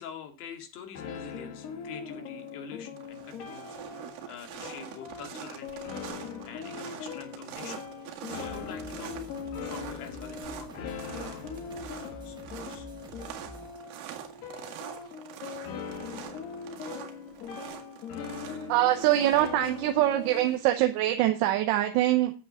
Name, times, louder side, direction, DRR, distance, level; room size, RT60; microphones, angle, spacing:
voice 1, 0.0-6.0 6.4-7.9 8.3-11.4 11.9-12.9, left 7 dB, 65° left, 6 dB, 2.3 m, -46 dB
sound 1, 0.9-20.5, left 6 dB, 30° left, 1.2 m, -40 dB
sound 2, 2.1-2.5 2.8-20.7, right 11 dB, 60° right, 2.1 m, -45 dB
sound 3, 3.1-15.1, right 2 dB, 10° right, 1.2 m, -51 dB
voice 2, 18.2-22.3, right 14 dB, 35° right, 5 dB, 0.7 m, -24 dB
8.1 x 6.0 x 7.1 m, 0.34 s
supercardioid pair, 175°, 48 cm